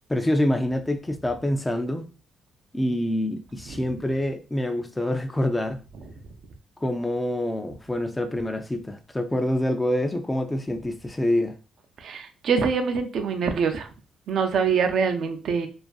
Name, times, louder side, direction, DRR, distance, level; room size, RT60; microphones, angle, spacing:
voice 1, 0.1-2.0 2.7-5.8 6.8-11.6, left 1 dB, 15° left, 0.4 m, -26 dB
voice 2, 12.0-13.9 14.3-15.7, right 6 dB, 65° right, 0.4 m, -24 dB
2.5 x 2.4 x 2.3 m
cardioid pair, 90°, 0 cm